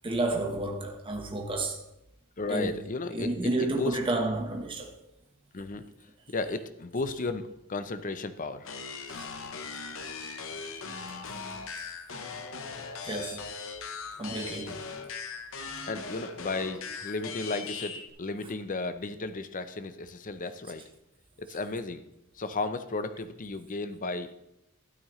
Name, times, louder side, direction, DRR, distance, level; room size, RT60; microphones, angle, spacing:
voice 1, 0.0-1.8 2.5-2.7 3.1-4.9 9.1-9.3 13.0-13.5 14.2-14.8, right 2 dB, 25° right, 1.2 m, -31 dB
voice 2, 2.4-3.3 3.6-4.0 5.5-5.8 6.3-8.7 14.4-14.5 15.9-20.8 21.4-22.1 22.3-24.3, left 3 dB, 40° left, 0.6 m, -34 dB
sound 1, 8.6-18.1, left 5 dB, 65° left, 1.0 m, -39 dB
12.5 x 9.3 x 3.1 m
head